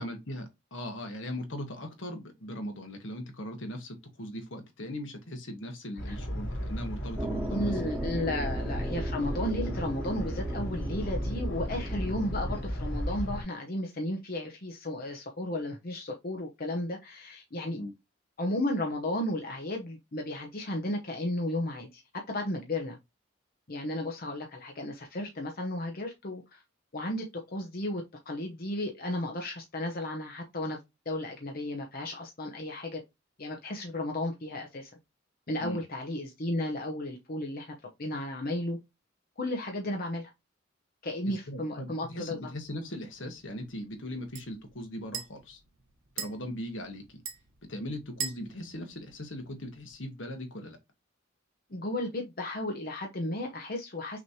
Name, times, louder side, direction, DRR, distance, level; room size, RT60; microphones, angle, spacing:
voice 1, 0.0-8.0 11.5-11.6 17.7-17.9 35.6-35.8 41.3-45.6 46.1-47.2 47.7-50.8, left 1 dB, 70° left, 1.3 m, -39 dB
sound 1, 6.0-13.4, equal, 85° left, 3.1 m, -34 dB
sound 2, 7.2-12.7, right 1 dB, 10° right, 0.4 m, -39 dB
voice 2, 7.5-17.8 18.4-22.0 22.3-23.0 23.7-26.6 26.9-27.2 27.5-30.8 31.1-33.0 33.4-34.9 35.5-37.7 38.0-38.8 39.4-40.3 41.0-42.5 51.7-54.2, left 1 dB, 45° left, 0.9 m, -34 dB
sound 3, 42.1-49.9, right 7 dB, 75° right, 1.3 m, -45 dB
6.0 x 3.2 x 2.8 m
head